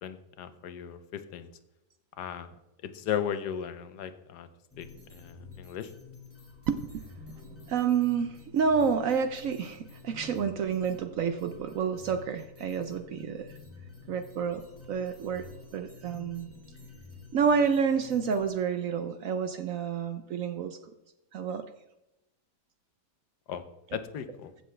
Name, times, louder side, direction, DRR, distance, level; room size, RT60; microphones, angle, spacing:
voice 1, 0.0-1.5 2.2-2.5 2.8-4.5 4.8-5.9 23.5-23.6 23.9-24.5, left 9 dB, 75° left, 11 dB, 1.3 m, -36 dB
sound 1, 4.7-18.5, left 4 dB, 10° left, 2.1 m, -49 dB
voice 2, 6.7-7.1 7.7-13.5 14.1-15.5 15.7-16.5 17.3-20.8 21.3-21.6 23.9-24.0, right 6 dB, 65° right, 9 dB, 0.9 m, -29 dB
15.0 x 6.8 x 3.3 m, 0.93 s
omnidirectional pair, 1.8 m